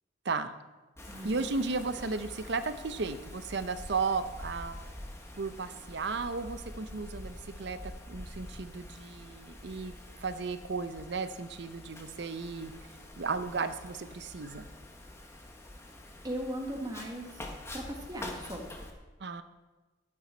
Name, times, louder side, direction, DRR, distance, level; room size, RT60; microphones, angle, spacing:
Wind, 1.0-18.9, left 1 dB, 15° left, 1.2 m, -46 dB
voice 1, 1.2-4.8 5.3-9.9 10.2-12.7 13.2-14.7 19.2-19.4, right 4 dB, 65° right, 11 dB, 0.7 m, -34 dB
voice 2, 16.2-18.6, equal, 20° right, 2 dB, 1.6 m, -38 dB
12.5 x 8.7 x 4.4 m, 1.2 s
head